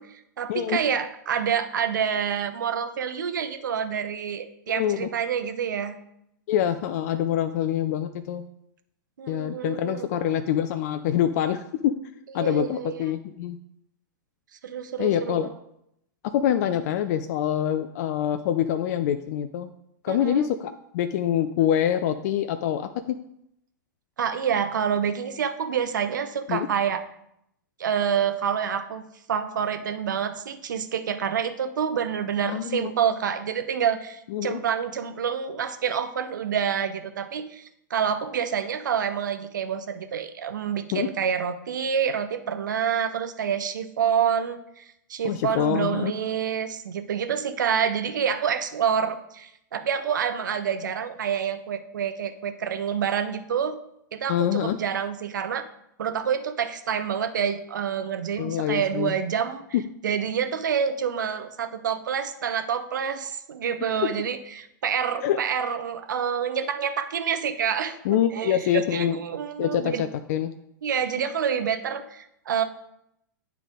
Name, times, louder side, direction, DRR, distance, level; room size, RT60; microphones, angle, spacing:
voice 1, 0.0-6.0 9.2-10.2 12.4-13.0 14.6-15.5 20.1-20.5 24.2-27.0 27.8-29.0 29.3-44.8 45.1-53.8 54.1-55.6 56.0-59.6 60.0-70.0 70.8-72.6, right 7 dB, 70° right, 8 dB, 0.7 m, -27 dB
voice 2, 4.7-5.1 6.5-8.4 9.3-11.9 12.3-13.6 15.0-15.5 16.3-19.7 20.0-23.2 26.5-26.7 32.4-32.9 34.3-34.6 40.9-41.1 45.2-46.1 54.3-54.8 58.4-59.1 59.7-59.8 63.8-63.9 65.2-65.4 68.0-69.2 69.6-70.5, left 10 dB, 55° left, 9 dB, 0.4 m, -25 dB
9.7 x 3.5 x 3.6 m, 0.77 s
hypercardioid pair, 105°, 10 cm